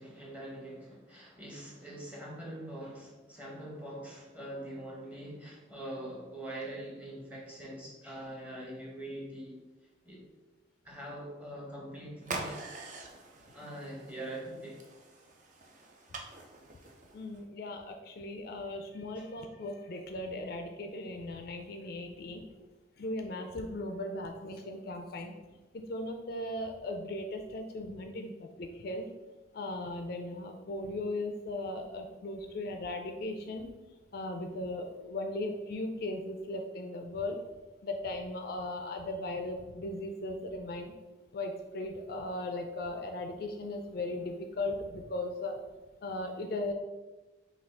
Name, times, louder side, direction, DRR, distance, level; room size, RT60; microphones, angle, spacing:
voice 1, 0.0-9.6 10.0-10.2 10.8-12.6 13.5-14.8, right 1 dB, 5° right, -3 dB, 0.9 m, -43 dB
sound 1, 12.2-17.4, right 3 dB, 40° right, 0.5 m, -44 dB
voice 2, 17.1-22.4 23.0-25.3 25.7-29.1 29.5-33.7 34.1-37.4 37.8-40.9 41.3-45.6 46.0-46.7, left 2 dB, 50° left, 4 dB, 0.4 m, -37 dB
5.8 x 2.4 x 3.4 m, 1.2 s
head